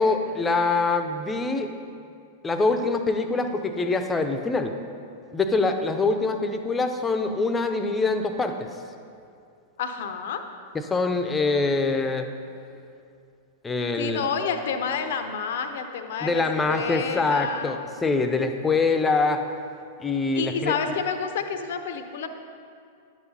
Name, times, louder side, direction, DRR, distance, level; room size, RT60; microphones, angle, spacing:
voice 1, 0.0-1.7 2.4-4.7 5.3-8.7 10.7-12.3 13.6-14.3 16.2-19.5 20.0-20.8, left 3 dB, 15° left, 7 dB, 0.7 m, -24 dB
voice 2, 9.8-10.4 14.0-17.9 20.3-22.3, left 6 dB, 60° left, 7 dB, 0.7 m, -29 dB
11.0 x 8.1 x 4.1 m, 2.4 s
figure-of-eight pair, 95°, 0 cm